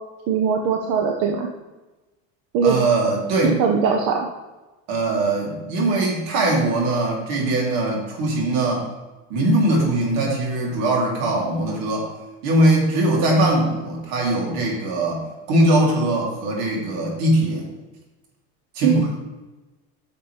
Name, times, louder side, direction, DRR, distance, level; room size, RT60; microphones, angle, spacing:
voice 1, 0.3-1.5 2.5-2.8 3.4-4.3 18.8-19.0, right 6 dB, 60° right, 1 dB, 1.1 m, -20 dB
voice 2, 2.6-3.6 4.9-8.9 9.3-12.1 12.4-17.7 18.7-19.0, right 1 dB, 80° right, -2 dB, 3.2 m, -21 dB
11.0 x 6.6 x 3.4 m, 1.1 s
supercardioid pair, 120°, 36 cm